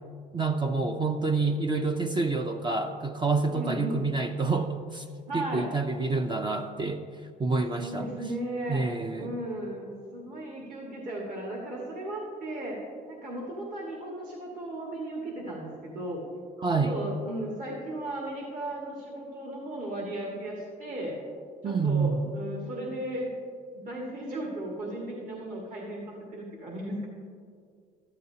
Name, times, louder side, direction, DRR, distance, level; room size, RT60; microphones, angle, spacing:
voice 1, 0.3-5.0 5.3-7.0 7.4-8.1 8.7-9.4 16.6-17.0 21.6-22.2, right 3 dB, 25° right, 5 dB, 0.5 m, -28 dB
voice 2, 3.5-4.0 5.3-5.8 7.8-8.8 9.2-12.8 13.1-16.2 16.8-21.2 21.6-23.3 23.7-27.1, right 1 dB, 50° right, -3 dB, 1.9 m, -36 dB
14.0 x 11.0 x 2.8 m, 2.1 s
cardioid pair, 110°, 17 cm